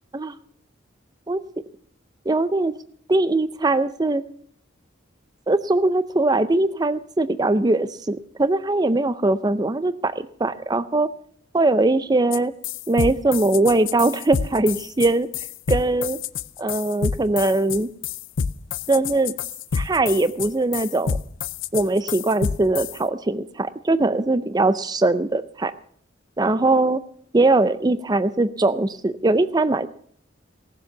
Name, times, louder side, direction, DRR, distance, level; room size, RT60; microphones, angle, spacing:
voice 1, 2.3-2.7 3.1-4.2 5.5-11.1 11.5-12.5 12.9-15.3 15.7-16.2 16.6-17.9 18.9-19.3 19.7-21.2 21.7-25.7 26.4-27.0 27.3-29.9, right 2 dB, 20° right, 14 dB, 0.5 m, -21 dB
sound 1, 12.3-12.4 12.6-23.0, left 6 dB, 70° left, 0.5 m, -28 dB
18.0 x 7.3 x 7.1 m, 0.62 s
head